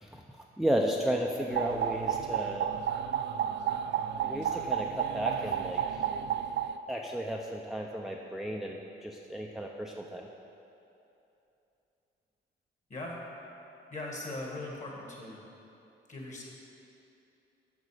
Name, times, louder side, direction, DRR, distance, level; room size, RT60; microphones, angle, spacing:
voice 1, 0.0-2.7 4.2-6.1 6.9-10.3, equal, ahead, 0 dB, 0.5 m, -34 dB
sound 1, 1.5-6.8, right 9 dB, 65° right, 0.4 m, -32 dB
voice 2, 12.9-13.2 13.9-15.4 16.1-16.5, left 2 dB, 35° left, -2 dB, 1.9 m, -39 dB
8.2 x 6.1 x 5.0 m, 2.9 s
cardioid pair, 90°, 20 cm